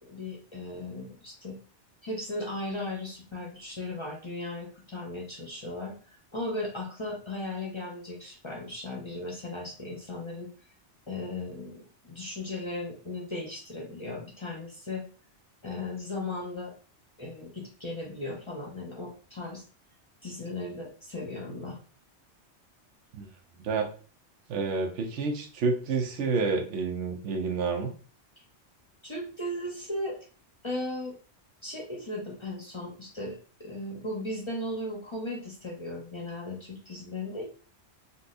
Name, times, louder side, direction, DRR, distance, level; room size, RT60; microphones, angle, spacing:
voice 1, 0.1-1.6 2.0-5.9 6.3-10.5 11.1-15.0 15.6-16.7 17.2-19.6 20.2-21.8 29.0-30.2 30.6-31.1 31.6-37.5, left 2 dB, 30° left, -2 dB, 0.7 m, -36 dB
voice 2, 24.5-27.9, right 4 dB, 80° right, 4 dB, 1.0 m, -29 dB
4.0 x 2.3 x 2.4 m, 0.39 s
omnidirectional pair, 1.2 m